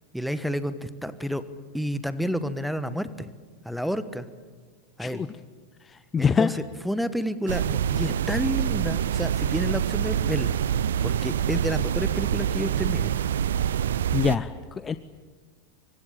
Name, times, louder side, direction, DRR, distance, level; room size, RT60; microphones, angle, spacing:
voice 1, 0.1-1.4 1.7-3.3 3.6-4.3 5.0-5.2 6.2-10.6 11.0-13.2, equal, ahead, 13 dB, 1.4 m, -30 dB
voice 2, 5.8-6.5 14.1-15.0, left 6 dB, 20° left, 14 dB, 0.7 m, -25 dB
sound 1, 7.5-14.4, right 9 dB, 60° right, 0.7 m, -26 dB
26.0 x 24.0 x 8.9 m, 1.5 s
figure-of-eight pair, 90°, 0 cm